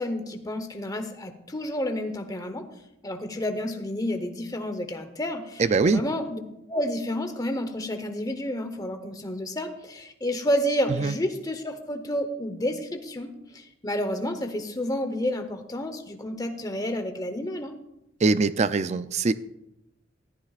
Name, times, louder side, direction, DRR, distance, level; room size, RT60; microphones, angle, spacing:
voice 1, 0.0-2.7 3.0-6.4 6.7-17.7, left 1 dB, 20° left, 6 dB, 0.9 m, -30 dB
voice 2, 5.6-6.0 11.0-11.2 18.2-19.3, right 4 dB, 35° right, 13 dB, 0.4 m, -22 dB
14.5 x 13.0 x 2.4 m, 0.86 s
head